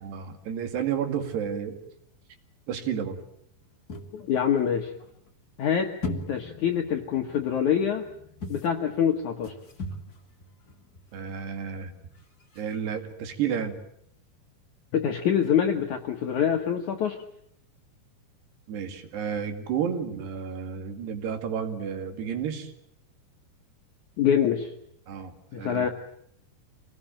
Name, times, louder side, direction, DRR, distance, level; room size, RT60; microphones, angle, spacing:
voice 1, 0.0-1.8 2.7-3.2 11.1-11.9 12.6-13.8 18.7-22.7 25.1-25.9, right 8 dB, 70° right, 7 dB, 4.1 m, -31 dB
sound 1, 3.9-5.3 6.0-11.0 11.4-11.5 11.7-11.8 12.1-12.2 12.4-12.8, left 2 dB, 35° left, 1.7 m, -39 dB
voice 2, 4.1-4.9 5.6-5.9 6.3-8.1 8.5-9.5 14.9-17.2 24.2-24.7 25.5-25.9, left 8 dB, 65° left, 4 dB, 2.0 m, -25 dB
26.5 x 18.5 x 9.0 m, 0.72 s
omnidirectional pair, 5.2 m